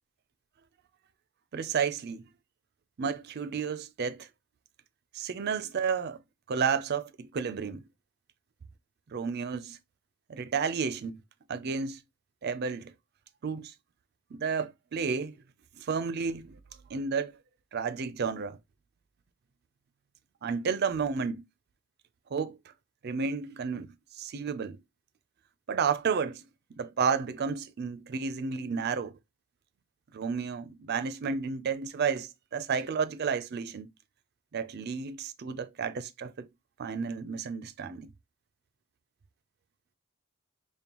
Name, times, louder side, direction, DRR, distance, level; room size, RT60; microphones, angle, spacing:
voice 1, 1.5-2.2 3.0-4.3 5.1-6.2 6.5-7.8 9.1-9.8 10.3-11.2 11.5-12.0 12.4-12.9 13.4-13.7 14.3-15.4 15.8-16.6 16.9-17.4 17.7-18.6 20.4-21.4 22.3-22.6 23.0-24.8 25.7-26.4 26.8-29.1 30.1-33.9 34.5-36.5 36.8-38.1, right 6 dB, 50° right, 0.4 m, -31 dB
5.2 x 2.1 x 2.9 m
head